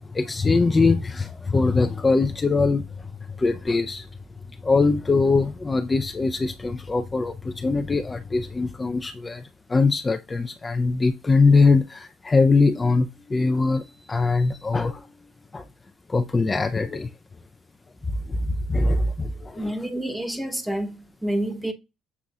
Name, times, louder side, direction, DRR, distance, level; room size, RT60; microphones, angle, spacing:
voice 1, 0.1-2.8 3.4-4.0 4.6-9.4 9.7-15.0 15.5-15.6 16.1-17.1 18.3-19.7, left 3 dB, 25° left, 0.5 m, -22 dB
voice 2, 19.6-21.7, right 1 dB, 5° right, 0.9 m, -28 dB
6.8 x 3.0 x 2.4 m
hypercardioid pair, 65°, 0 cm